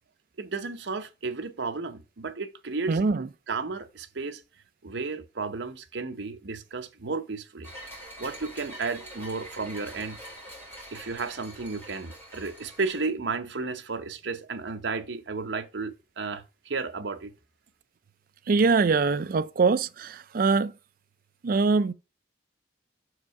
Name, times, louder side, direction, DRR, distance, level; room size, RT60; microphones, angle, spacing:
voice 1, 0.4-3.0 3.5-4.4 4.8-7.7 8.2-10.2 10.9-17.3, right 4 dB, 70° right, 0.8 m, -33 dB
voice 2, 2.9-3.3 18.5-20.7 21.4-21.9, right 4 dB, 50° right, 0.4 m, -23 dB
sound 1, 7.6-13.1, equal, 10° left, 2.1 m, -44 dB
6.4 x 4.8 x 4.7 m
head